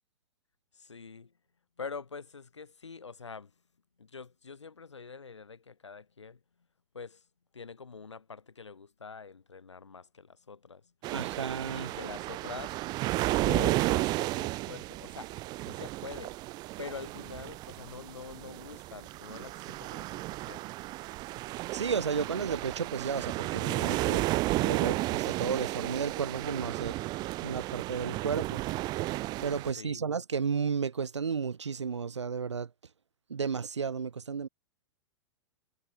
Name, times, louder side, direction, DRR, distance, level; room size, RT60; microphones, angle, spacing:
voice 1, 0.7-1.3 1.8-3.5 4.0-6.4 6.9-7.2 7.5-10.8 11.7-12.7 13.4-15.3 15.6-16.4 16.8-20.6 29.8-30.0, left 5 dB, 85° left, 1.3 m, -44 dB
sound 1, 11.0-29.7, right 19 dB, 30° right, 0.4 m, -33 dB
voice 2, 11.1-11.9 21.7-24.3 24.5-27.0 27.4-28.6 29.4-32.7 33.3-34.5, right 6 dB, 80° right, 1.0 m, -33 dB
figure-of-eight pair, 100°, 15 cm